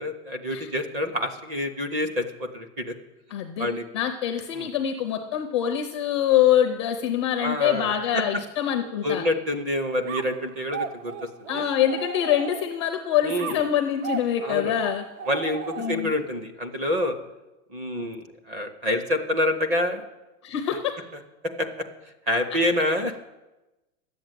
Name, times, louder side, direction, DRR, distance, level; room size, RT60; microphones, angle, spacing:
voice 1, 0.0-2.9 3.6-3.8 4.5-4.7 7.4-8.4 9.0-11.6 13.2-13.6 14.4-14.7 15.3-15.6 15.9-17.2 17.7-20.0 21.6-21.7 22.3-23.3, left 1 dB, 20° right, 8 dB, 0.6 m, -27 dB
voice 2, 3.3-3.7 3.9-9.3 11.5-15.0 15.8-16.1 20.4-20.9, left 10 dB, 20° left, 4 dB, 0.4 m, -24 dB
sound 1, 10.1-12.9 13.4-16.2, right 6 dB, 55° right, 0.7 m, -36 dB
11.0 x 7.8 x 9.1 m, 1.1 s
supercardioid pair, 170°, 44 cm